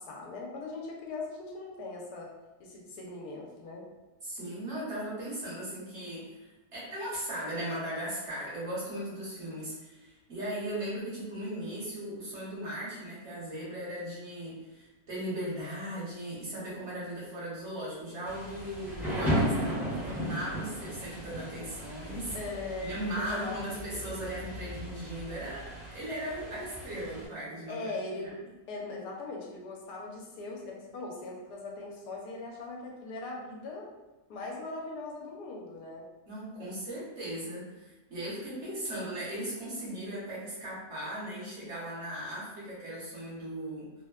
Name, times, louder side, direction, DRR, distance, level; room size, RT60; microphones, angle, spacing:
voice 1, 0.0-2.3 2.6-3.9 22.3-23.9 27.7-28.4 28.7-33.9 34.3-36.0, left 3 dB, 85° left, -1 dB, 1.2 m, -40 dB
voice 2, 4.2-22.3 22.8-27.9 36.3-43.9, right 1 dB, 50° right, -8 dB, 1.4 m, -38 dB
Thunder / Rain, 18.2-27.3, equal, ahead, 0.6 m, -36 dB
3.1 x 2.1 x 2.3 m, 1.1 s
omnidirectional pair, 1.6 m